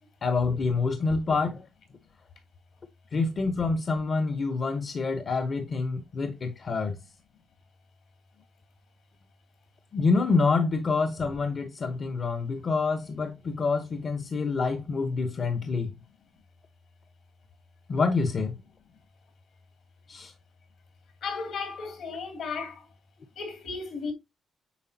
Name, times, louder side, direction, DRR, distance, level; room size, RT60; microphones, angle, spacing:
voice 1, 0.2-1.7 3.1-7.0 9.9-15.9 17.9-18.5 20.1-20.3, left 4 dB, 50° left, 1.0 m, -27 dB
voice 2, 21.2-22.9 23.4-24.1, left 4 dB, 75° left, 2.6 m, -35 dB
8.4 x 5.0 x 2.8 m
cardioid pair, 75°, 0 cm